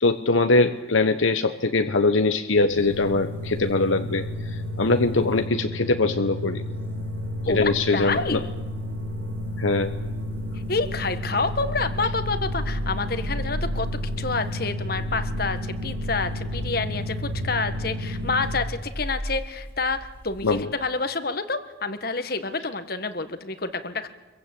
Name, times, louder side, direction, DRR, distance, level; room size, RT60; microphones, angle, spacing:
voice 1, 0.0-6.6 7.5-8.4 9.6-9.9 20.4-20.7, left 3 dB, 80° left, 8 dB, 1.1 m, -22 dB
sound 1, 2.6-18.7, left 1 dB, 85° right, 3.1 m, -32 dB
sound 2, 2.8-5.4 6.6-20.6, equal, 10° left, 1.7 m, -37 dB
voice 2, 7.5-8.5 10.7-13.9 14.2-24.1, left 3 dB, 50° left, 10 dB, 1.5 m, -28 dB
26.0 x 22.5 x 8.4 m, 1.2 s
head